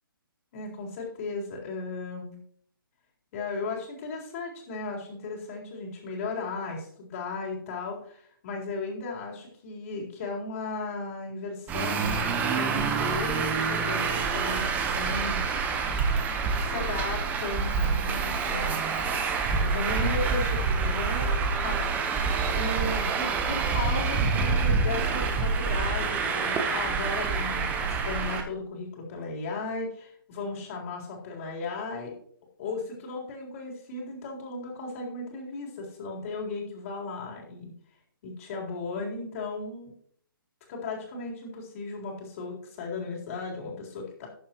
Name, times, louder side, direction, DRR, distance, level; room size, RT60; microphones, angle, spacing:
voice 1, 0.5-2.4 3.3-15.4 16.5-19.0 19.6-32.2 32.6-37.7 38.2-39.9 40.7-44.3, left 3 dB, 40° left, -2 dB, 4.0 m, -36 dB
Traffic noise roadway noise, 11.7-28.4, right 5 dB, 15° right, 1.1 m, -27 dB
19.0 x 7.3 x 3.1 m, 0.63 s
hypercardioid pair, 150°, 12 cm